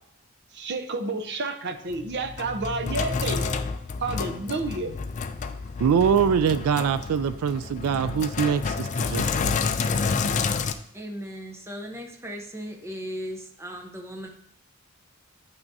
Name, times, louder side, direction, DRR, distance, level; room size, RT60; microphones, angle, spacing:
voice 1, 0.5-3.4 4.0-5.0, right 3 dB, 50° right, 7 dB, 0.6 m, -30 dB
Sink (filling or washing), 1.9-10.7, left 5 dB, 35° left, 0.4 m, -29 dB
voice 2, 5.8-9.5, right 7 dB, 90° right, 13 dB, 0.3 m, -23 dB
voice 3, 10.9-14.3, equal, 10° right, 2 dB, 0.7 m, -37 dB
8.7 x 5.8 x 2.7 m, 0.71 s
head